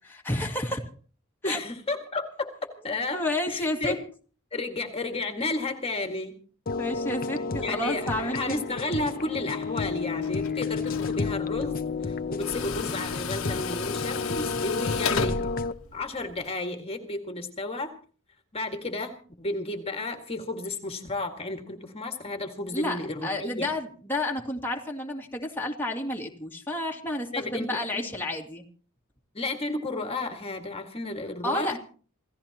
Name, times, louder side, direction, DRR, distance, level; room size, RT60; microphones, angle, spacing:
voice 1, 0.0-0.8 1.4-1.6 2.8-4.0 6.8-8.7 22.7-28.7 31.4-31.8, left 1 dB, 10° left, -1 dB, 2.2 m, -31 dB
voice 2, 1.4-2.5 2.8-3.2 3.5-4.0 4.5-6.3 7.6-15.5 15.9-17.9 18.5-23.7 27.3-27.7 27.9-28.1 29.3-31.8, left 2 dB, 30° left, 4 dB, 2.0 m, -32 dB
sound 1, 6.7-15.7, left 4 dB, 45° left, 0.7 m, -31 dB
Tools, 10.2-16.5, left 5 dB, 85° left, 1.4 m, -34 dB
28.0 x 16.5 x 3.0 m, 0.41 s
head